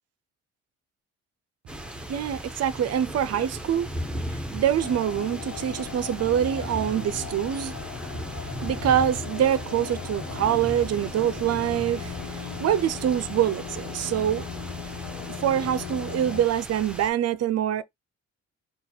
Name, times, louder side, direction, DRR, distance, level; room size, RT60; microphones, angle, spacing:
sound 1, 1.7-17.1, equal, 5° right, 1.0 m, -37 dB
voice 1, 2.1-3.9 4.3-7.8 8.3-14.4 15.4-17.8, right 10 dB, 55° right, 0.6 m, -25 dB
sound 2, 4.8-16.4, left 8 dB, 85° left, 1.1 m, -38 dB
4.0 x 2.4 x 4.4 m
cardioid pair, 90°, 30 cm